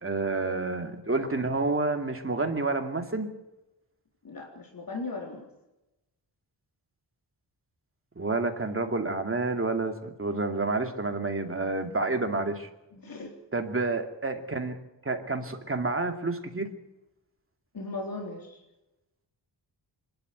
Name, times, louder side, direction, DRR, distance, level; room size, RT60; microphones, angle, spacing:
voice 1, 0.0-3.3 8.2-12.7 13.5-16.7, right 3 dB, 30° right, 5 dB, 2.5 m, -29 dB
voice 2, 4.2-5.5 12.9-13.3 17.7-18.6, left 3 dB, 50° left, 0 dB, 3.8 m, -37 dB
26.0 x 12.0 x 9.4 m, 0.94 s
wide cardioid pair, 135°, 44 cm